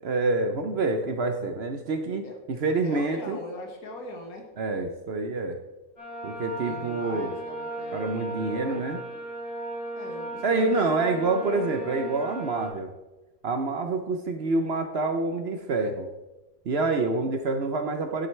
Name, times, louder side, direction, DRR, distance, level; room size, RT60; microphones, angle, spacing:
voice 1, 0.0-3.4 4.6-5.6 6.2-7.3 7.9-9.0 10.4-12.9 13.4-16.1 16.7-18.3, right 3 dB, 55° right, 6 dB, 0.8 m, -27 dB
voice 2, 2.8-4.5 6.5-8.8 9.9-11.2, left 1 dB, 80° left, 3 dB, 1.9 m, -41 dB
sound 1, 6.0-12.7, right 1 dB, 40° left, 3.7 m, -36 dB
11.0 x 7.7 x 3.2 m, 1.1 s
omnidirectional pair, 1.5 m